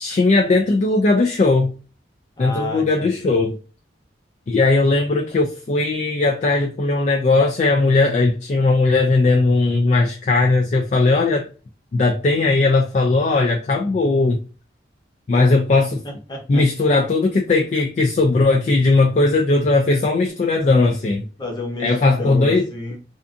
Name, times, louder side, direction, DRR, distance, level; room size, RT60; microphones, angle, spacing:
voice 1, 0.0-1.7 2.4-3.6 4.5-11.5 11.9-14.4 15.3-16.0 16.5-21.3 21.8-22.6, left 3 dB, 40° left, 0.3 m, -18 dB
voice 2, 2.4-3.3 15.3-15.4 16.0-16.6 21.4-23.0, left 2 dB, 25° left, 0.8 m, -31 dB
2.5 x 2.5 x 2.4 m
head